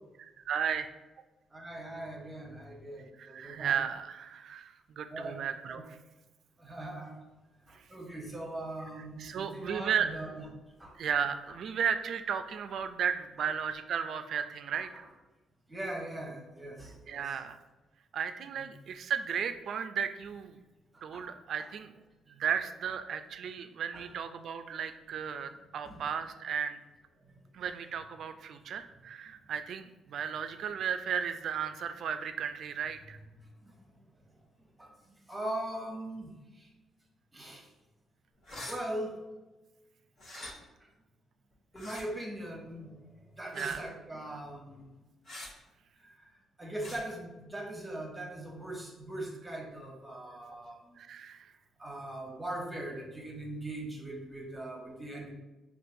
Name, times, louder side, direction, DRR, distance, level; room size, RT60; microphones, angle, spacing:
voice 1, 0.2-0.9 3.2-6.0 7.7-7.9 9.2-10.1 10.9-15.0 17.1-17.6 18.1-20.6 21.0-21.9 22.3-26.8 27.5-33.2 43.5-43.8 51.0-51.5, right 7 dB, 65° right, 9 dB, 0.3 m, -34 dB
voice 2, 1.5-3.8 5.1-5.4 5.7-5.8 6.6-7.2 7.7-10.5 10.8-10.9 11.5-11.6 13.4-13.5 14.7-15.1 15.7-17.4 18.4-18.7 20.9-21.3 21.6-21.7 22.8-22.9 23.9-24.2 25.5-26.1 33.2-33.3 33.6-33.8 34.8-36.7 37.3-37.7 38.7-39.2 40.3-40.6 41.7-42.9 43.3-44.9 46.0-46.3 46.6-51.0 51.8-55.3, right 1 dB, 15° right, 0 dB, 0.9 m, -41 dB
sound 1, 38.4-38.8 40.2-40.5 41.7-42.0 43.5-43.8 45.3-45.5 46.8-47.0, left 1 dB, 60° left, 1.1 m, -43 dB
5.3 x 2.4 x 2.6 m, 1.1 s
cardioid pair, 90°, 0 cm